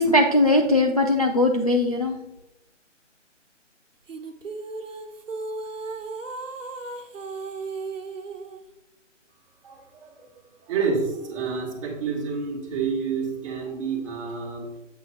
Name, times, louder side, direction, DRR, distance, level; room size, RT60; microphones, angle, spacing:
voice 1, 0.0-2.2, left 1 dB, 30° left, 2 dB, 0.4 m, -20 dB
sound 1, 4.1-8.6, right 3 dB, 80° right, 1.1 m, -35 dB
voice 2, 9.6-10.3 10.6-14.7, right 5 dB, 25° right, -3 dB, 1.7 m, -29 dB
8.4 x 8.0 x 2.5 m, 0.90 s
figure-of-eight pair, 155°, 38 cm